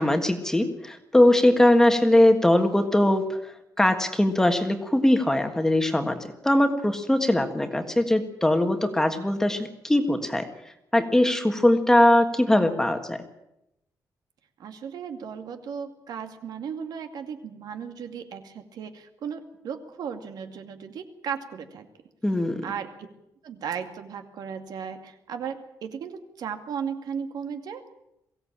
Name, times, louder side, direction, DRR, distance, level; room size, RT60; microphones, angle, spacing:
voice 1, 0.0-3.4 3.8-10.5 10.9-13.2 22.2-22.6, left 1 dB, 5° left, 6 dB, 1.6 m, -21 dB
voice 2, 14.6-21.8 22.6-22.9 23.4-27.9, right 7 dB, 70° right, 6 dB, 2.3 m, -35 dB
22.5 x 16.5 x 8.8 m, 0.86 s
wide cardioid pair, 175°, 7 cm